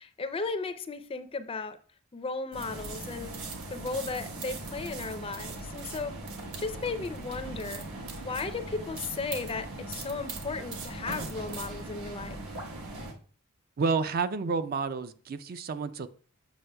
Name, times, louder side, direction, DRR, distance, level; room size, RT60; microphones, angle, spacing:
voice 1, 0.0-1.8 2.1-3.4 3.7-6.1 6.6-12.4, left 4 dB, 25° left, 0.4 m, -35 dB
sound 1, 2.5-13.1, right 2 dB, 70° right, 1.2 m, -39 dB
voice 2, 13.8-16.1, right 4 dB, 45° right, 0.4 m, -30 dB
8.0 x 6.1 x 2.2 m
head